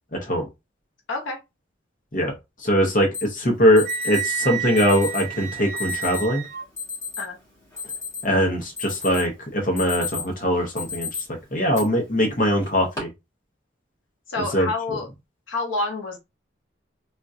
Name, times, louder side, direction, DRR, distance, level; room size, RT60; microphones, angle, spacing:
voice 1, 0.1-0.5 2.1-2.3 2.6-6.4 8.2-11.1 11.5-13.1 14.5-14.7, equal, 45° left, 0.8 m, -21 dB
Alarm, 3.1-3.2 3.8-4.2 4.8-5.2 5.8-6.2 6.8-7.2 7.6-8.4 8.8-9.3 9.6-10.3 10.8-11.2 11.7-11.8 12.6-13.0, left 5 dB, 15° left, 1.6 m, -31 dB
Wind instrument woodwind instrument, 3.8-6.6, right 10 dB, 50° right, 0.6 m, -31 dB
voice 2, 14.3-15.1 15.5-16.2, left 2 dB, 80° left, 0.9 m, -28 dB
3.6 x 2.4 x 2.6 m
head